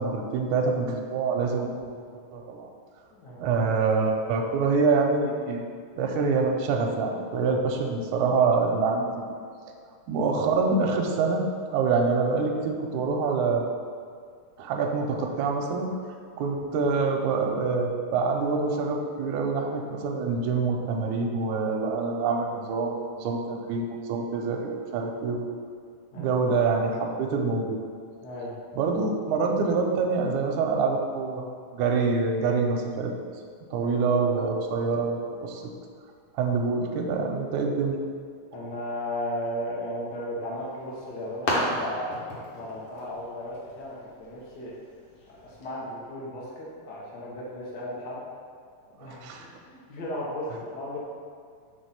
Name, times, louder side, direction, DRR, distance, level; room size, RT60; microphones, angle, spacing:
voice 1, 0.0-2.1 2.3-2.7 3.4-5.6 6.0-9.1 10.1-11.4 11.7-13.7 14.6-15.9 16.4-25.5 26.1-27.8 28.7-31.5 31.7-33.1 33.7-35.6 36.4-38.0 49.0-49.5, right 4 dB, 80° right, 1 dB, 1.8 m, -26 dB
voice 2, 3.1-3.4 26.1-26.3 28.2-28.5 33.7-34.0 38.5-42.1 42.5-44.7 45.4-48.2 48.9-51.0, left 1 dB, 90° left, -6 dB, 0.9 m, -35 dB
sound 1, 40.5-45.7, left 1 dB, 60° left, 1.6 m, -35 dB
6.0 x 3.2 x 5.7 m, 2.1 s
omnidirectional pair, 4.0 m